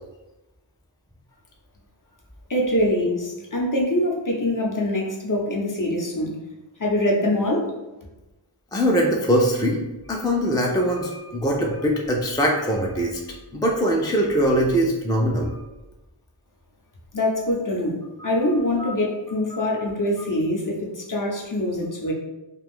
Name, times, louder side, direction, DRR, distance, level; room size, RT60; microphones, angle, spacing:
voice 1, 2.5-6.4 6.8-7.7 17.1-18.0 18.2-22.1, left 1 dB, 40° left, -1 dB, 0.7 m, -24 dB
voice 2, 8.7-9.8 10.1-13.2 13.5-15.6 18.2-18.3 18.8-18.9 19.5-19.7, equal, 10° left, -1 dB, 0.3 m, -22 dB
2.5 x 2.3 x 3.5 m, 1.1 s
wide cardioid pair, 55°, 49 cm